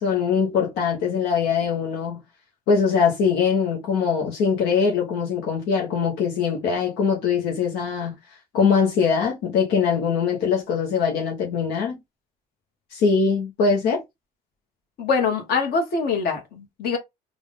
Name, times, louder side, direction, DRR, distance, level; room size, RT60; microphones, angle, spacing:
voice 1, 0.0-2.2 2.7-8.2 8.5-12.0 12.9-14.0, left 6 dB, 90° left, 1.2 m, -22 dB
voice 2, 15.0-17.0, left 5 dB, 65° left, 1.7 m, -24 dB
3.5 x 2.6 x 3.6 m
cardioid pair, 110°, 17 cm